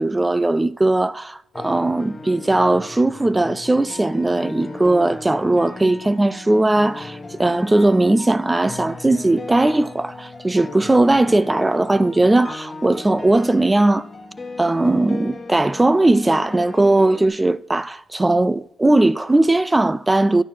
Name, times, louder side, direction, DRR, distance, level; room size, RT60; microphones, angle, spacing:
voice 1, 0.0-14.1 14.6-20.4, right 2 dB, 15° right, 0.3 m, -18 dB
sound 1, 1.5-17.3, left 3 dB, 25° left, 1.2 m, -37 dB
11.0 x 4.6 x 5.9 m
cardioid pair, 90°, 0 cm